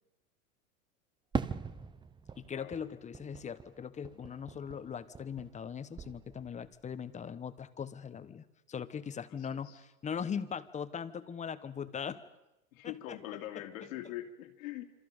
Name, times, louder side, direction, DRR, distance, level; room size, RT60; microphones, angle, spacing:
Fireworks, 1.3-5.7 6.0-6.8, right 5 dB, 10° right, 0.7 m, -41 dB
voice 1, 2.4-12.2 12.8-13.2 13.5-13.7, left 7 dB, 15° left, 13 dB, 1.0 m, -40 dB
voice 2, 9.3-9.8 12.7-14.9, left 13 dB, 65° left, 4 dB, 2.9 m, -43 dB
26.5 x 26.5 x 5.2 m, 0.95 s
hypercardioid pair, 110°, 43 cm